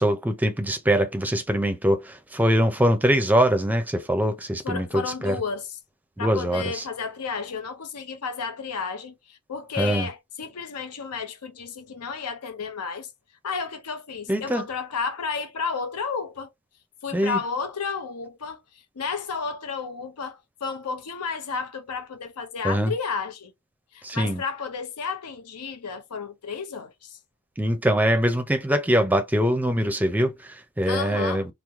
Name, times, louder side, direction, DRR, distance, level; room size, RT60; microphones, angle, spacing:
voice 1, 0.0-5.4 6.2-6.8 9.8-10.1 14.3-14.7 17.1-17.4 22.6-22.9 24.0-24.4 27.6-31.5, equal, 10° right, 0.5 m, -23 dB
voice 2, 4.6-5.8 6.2-13.1 13.4-16.5 17.0-23.5 23.9-27.2 30.9-31.5, left 5 dB, 90° left, 0.6 m, -32 dB
3.1 x 2.0 x 3.4 m
head